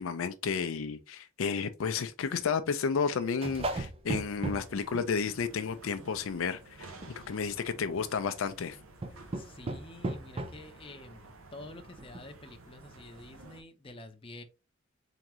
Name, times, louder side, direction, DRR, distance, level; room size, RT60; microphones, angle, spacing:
voice 1, 0.0-8.8, left 5 dB, 70° left, 0.4 m, -32 dB
sound 1, 3.0-5.6 6.0-6.4 6.9-7.1 7.7-8.0 9.0-10.6 11.2-11.3 11.6-11.7 12.0-12.3, right 2 dB, 30° right, 0.5 m, -37 dB
sound 2, 4.1-13.6, right 2 dB, 80° right, 0.9 m, -53 dB
voice 2, 9.3-14.4, left 2 dB, 25° left, 0.6 m, -49 dB
3.8 x 3.5 x 3.0 m
head